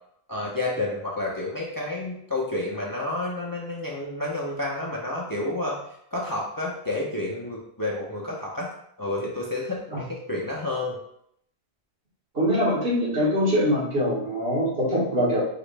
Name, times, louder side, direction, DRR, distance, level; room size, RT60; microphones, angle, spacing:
voice 1, 0.3-5.8 6.1-8.7 9.0-11.0, left 2 dB, 25° left, -3 dB, 0.6 m, -30 dB
voice 2, 12.3-15.4, equal, 65° right, -5 dB, 1.7 m, -23 dB
4.9 x 3.1 x 3.3 m, 0.71 s
omnidirectional pair, 1.1 m